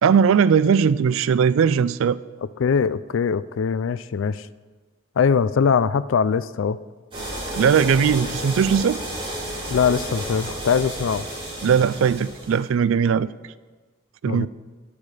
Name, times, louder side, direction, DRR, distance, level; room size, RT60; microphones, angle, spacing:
voice 1, 0.0-2.2 7.5-9.0 11.6-13.3 14.2-14.5, right 7 dB, 80° right, 18 dB, 0.3 m, -19 dB
voice 2, 2.6-4.5 5.2-6.8 9.7-11.3 14.3-14.5, left 6 dB, 70° left, 16 dB, 0.4 m, -21 dB
sound 1, 7.1-12.6, right 1 dB, 25° right, 3.6 m, -32 dB
10.5 x 8.7 x 4.9 m, 1.3 s
head